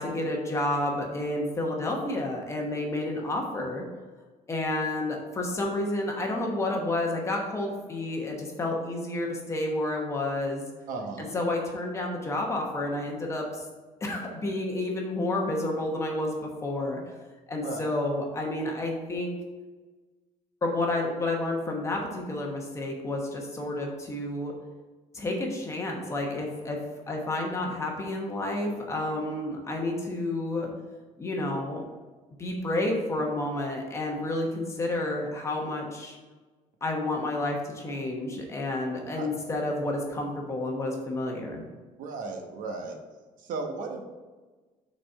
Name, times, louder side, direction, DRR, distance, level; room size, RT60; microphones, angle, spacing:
voice 1, 0.0-3.9 4.5-10.6 11.2-13.7 14.0-17.0 17.5-19.4 20.6-24.5 25.1-26.8 27.1-30.7 31.2-31.8 32.4-36.2 36.8-41.6, left 2 dB, 20° left, 0 dB, 1.0 m, -30 dB
voice 2, 10.9-11.3 17.6-17.8 39.2-39.3 42.0-43.0 43.4-44.0, right 3 dB, 70° right, 3 dB, 1.0 m, -35 dB
6.1 x 4.2 x 5.4 m, 1.3 s
cardioid pair, 180°, 14 cm